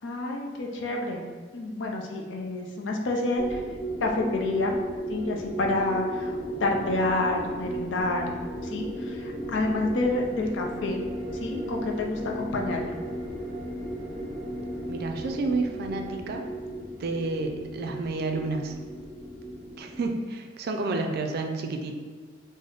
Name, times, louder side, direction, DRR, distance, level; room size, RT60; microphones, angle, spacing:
voice 1, 0.0-1.2 1.5-3.6 4.0-4.8 5.1-8.3 8.6-11.0 11.3-13.0, left 2 dB, 80° left, 1 dB, 0.5 m, -28 dB
sound 1, 3.4-20.1, equal, 10° left, 0.9 m, -35 dB
voice 2, 14.9-16.5 17.0-18.8 19.8-21.9, right 3 dB, 55° right, 4 dB, 0.3 m, -30 dB
3.8 x 2.0 x 3.3 m, 1.5 s
head